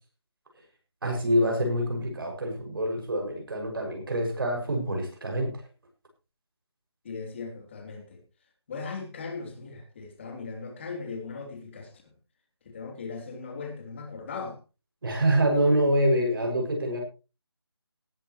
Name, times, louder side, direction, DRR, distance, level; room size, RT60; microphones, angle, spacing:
voice 1, 1.0-5.6 15.0-17.0, right 1 dB, 55° right, 2 dB, 6.6 m, -26 dB
voice 2, 7.0-8.2 8.7-12.1 12.6-14.6, left 4 dB, 25° left, 2 dB, 3.4 m, -38 dB
19.0 x 11.0 x 3.2 m, 0.32 s
figure-of-eight pair, 170°, 14 cm